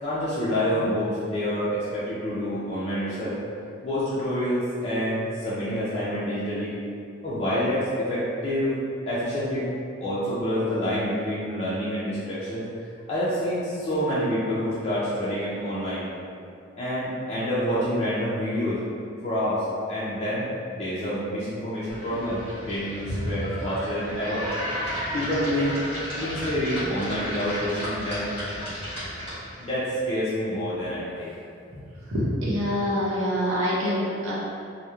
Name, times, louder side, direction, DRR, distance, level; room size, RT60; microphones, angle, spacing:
voice 1, 0.0-3.4 3.8-6.8 7.2-8.8 9.1-9.7 10.0-12.6 13.1-16.0 16.8-18.8 19.1-22.4 22.7-24.5 25.1-25.8 26.2-28.3 29.6-31.3, equal, 30° left, -10 dB, 0.4 m, -27 dB
sound 1, 21.9-29.6, equal, 10° left, 1.0 m, -33 dB
voice 2, 32.1-34.3, equal, 90° right, -7 dB, 0.7 m, -25 dB
2.9 x 2.0 x 2.3 m, 2.4 s
head